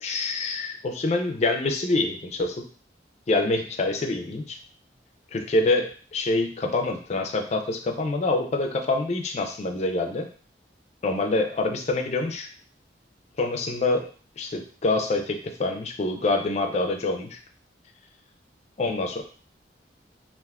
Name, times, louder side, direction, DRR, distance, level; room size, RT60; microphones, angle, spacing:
voice 1, 0.0-2.6 3.3-4.6 5.3-10.3 11.0-12.5 13.4-14.1 14.4-17.4 18.8-19.2, left 2 dB, 40° left, 3 dB, 0.4 m, -26 dB
3.4 x 2.4 x 2.3 m, 0.42 s
head